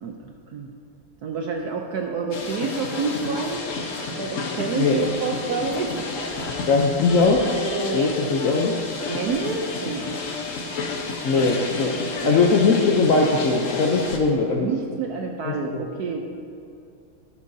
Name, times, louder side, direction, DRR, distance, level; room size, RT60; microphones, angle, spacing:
voice 1, 0.0-0.7 1.2-3.6 4.2-6.0 7.6-8.0 9.0-10.3 12.2-12.5 14.5-16.3, right 5 dB, 65° right, 2 dB, 0.9 m, -28 dB
sound 1, 2.3-14.2, left 3 dB, 50° left, 1.1 m, -31 dB
voice 2, 6.7-7.4 7.9-8.7 11.2-11.9 12.2-14.7 15.5-15.9, left 4 dB, 70° left, 0 dB, 0.7 m, -20 dB
13.0 x 11.0 x 2.7 m, 2.5 s
omnidirectional pair, 2.3 m